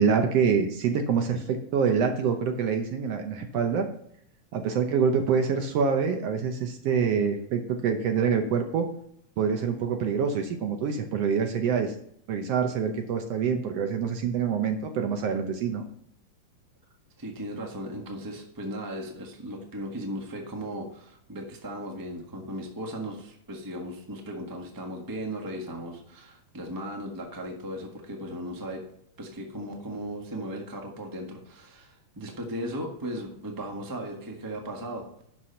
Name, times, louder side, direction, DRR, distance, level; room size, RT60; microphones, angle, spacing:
voice 1, 0.0-3.9 4.5-8.8 9.4-11.9 12.3-15.8, right 6 dB, 70° right, 5 dB, 1.6 m, -26 dB
voice 2, 17.2-28.8 29.2-35.0, equal, 30° right, 1 dB, 0.3 m, -37 dB
11.5 x 4.8 x 5.6 m, 0.69 s
omnidirectional pair, 3.5 m